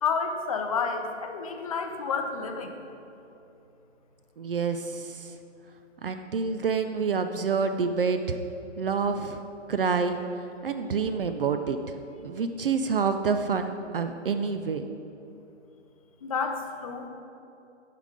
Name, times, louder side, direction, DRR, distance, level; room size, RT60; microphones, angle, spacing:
voice 1, 0.0-2.7 16.2-17.1, left 5 dB, 30° left, 5 dB, 0.5 m, -30 dB
voice 2, 4.4-5.3 6.0-8.4 8.8-9.4 9.7-10.2 10.6-11.9 12.2-14.8, right 5 dB, 50° right, 8 dB, 0.4 m, -27 dB
11.0 x 3.8 x 4.9 m, 2.8 s
figure-of-eight pair, 140°, 37 cm